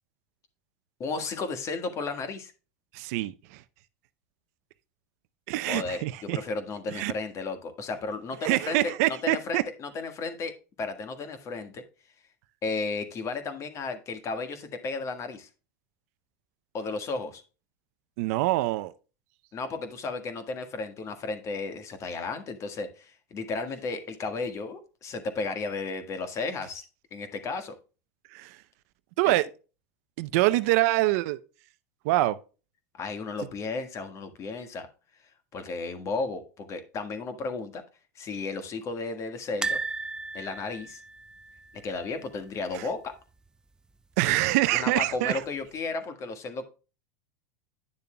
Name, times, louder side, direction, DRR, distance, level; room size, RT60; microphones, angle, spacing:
voice 1, 1.0-2.5 5.7-11.8 12.6-15.5 16.7-17.4 19.5-26.8 27.1-27.8 29.2-29.3 33.0-34.9 35.5-37.8 38.1-39.8 40.3-41.0 41.8-43.1 44.7-46.7, left 3 dB, 35° left, 1.5 m, -34 dB
voice 2, 2.9-3.6 5.5-6.4 6.9-7.1 8.4-9.6 18.2-18.9 28.3-28.6 29.2-29.5 30.2-31.4 32.0-32.4 42.7-42.8 44.2-45.4, right 17 dB, 65° right, 0.6 m, -25 dB
sound 1, 39.6-42.7 42.9-43.1 43.4-43.5 44.7-45.3 45.8-45.9, right 3 dB, 10° right, 0.3 m, -35 dB
10.0 x 6.9 x 2.2 m
supercardioid pair, 120°, 9 cm